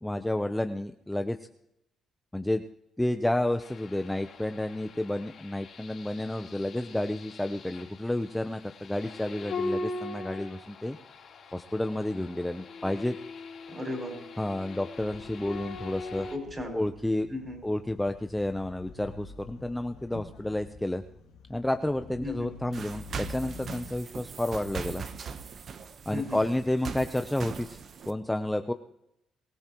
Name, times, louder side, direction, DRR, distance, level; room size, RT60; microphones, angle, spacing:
voice 1, 0.0-1.4 2.3-2.6 3.0-11.0 11.5-13.2 14.4-16.3 16.7-17.3 17.6-21.0 21.5-25.0 26.1-28.7, left 1 dB, 10° left, 7 dB, 0.7 m, -30 dB
sound 1, 3.6-16.4, left 3 dB, 60° left, 3.6 m, -41 dB
voice 2, 13.7-14.2 16.2-16.8 17.3-17.6 22.2-22.5 26.1-26.4, left 2 dB, 25° right, 2 dB, 6.1 m, -35 dB
sound 2, 15.0-23.9, left 4 dB, 90° left, 1.9 m, -49 dB
sound 3, 22.7-28.1, right 6 dB, 55° right, 1.0 m, -40 dB
23.0 x 16.0 x 3.0 m, 0.82 s
cardioid pair, 90°, 0 cm